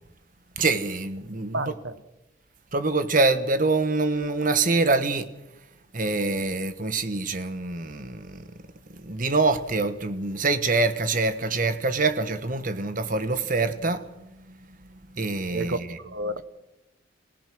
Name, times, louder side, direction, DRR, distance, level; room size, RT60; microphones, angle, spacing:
voice 1, 0.6-1.7 2.7-5.3 5.9-8.5 8.9-16.0, right 3 dB, 40° right, 1.2 m, -25 dB
voice 2, 1.5-1.9 15.5-15.8 16.0-16.4, right 2 dB, 60° right, 1.2 m, -30 dB
27.0 x 17.5 x 6.2 m
head